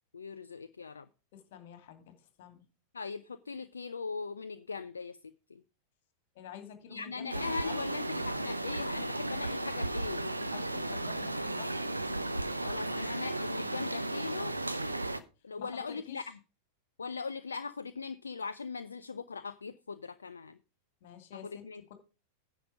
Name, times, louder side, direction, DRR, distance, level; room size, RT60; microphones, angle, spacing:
voice 1, 0.1-1.1 2.9-5.6 6.9-10.4 12.6-14.6 15.4-16.3 17.0-20.6 21.4-21.9, left 4 dB, 75° left, 0.5 m, -40 dB
voice 2, 1.3-2.6 6.3-8.0 10.3-11.7 15.6-16.2 21.0-21.6, left 9 dB, 50° left, 2.3 m, -48 dB
sound 1, 7.3-15.2, right 2 dB, 85° right, 0.7 m, -34 dB
10.0 x 6.7 x 4.9 m
figure-of-eight pair, 90°, 0 cm